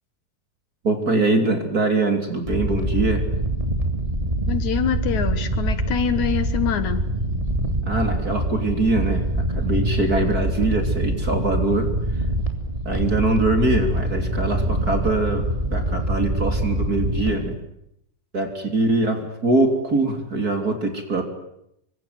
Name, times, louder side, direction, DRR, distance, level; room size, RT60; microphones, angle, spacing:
voice 1, 0.8-3.2 7.8-9.2 9.5-11.9 12.8-17.6 18.3-21.2, right 2 dB, 30° right, 5 dB, 3.2 m, -23 dB
sound 1, 2.5-17.5, right 1 dB, 10° right, 2.9 m, -24 dB
voice 2, 4.5-7.1, left 8 dB, 65° left, 11 dB, 2.6 m, -25 dB
26.5 x 24.0 x 9.4 m, 0.79 s
omnidirectional pair, 3.8 m